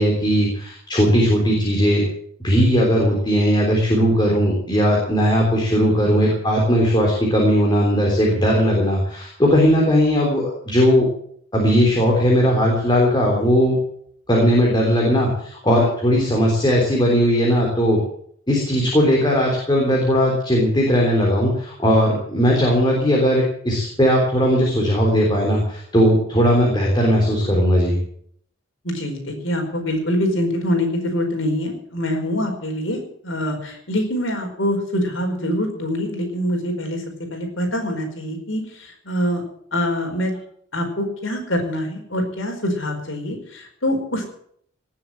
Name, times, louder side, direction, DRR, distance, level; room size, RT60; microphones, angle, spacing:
voice 1, 0.0-2.0 2.4-11.1 11.5-13.8 14.3-18.0 18.5-28.0, equal, 20° left, -2 dB, 3.6 m, -18 dB
voice 2, 28.8-37.0 37.3-39.4 39.7-40.3 40.7-44.2, equal, 65° left, 3 dB, 4.7 m, -24 dB
18.5 x 7.5 x 9.1 m, 0.64 s
head